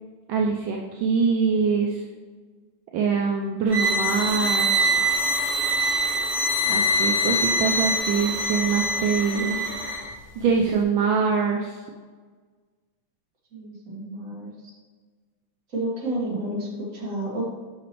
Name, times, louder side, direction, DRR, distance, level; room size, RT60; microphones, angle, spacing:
voice 1, 0.3-2.0 2.9-4.8 6.7-9.6 10.4-11.8, right 5 dB, 75° right, 1 dB, 1.3 m, -24 dB
sound 1, 3.7-10.0, equal, 10° right, 0.6 m, -24 dB
voice 2, 13.5-14.5 15.7-17.5, right 1 dB, 40° right, -4 dB, 2.0 m, -30 dB
7.1 x 5.9 x 3.0 m, 1.5 s
omnidirectional pair, 2.4 m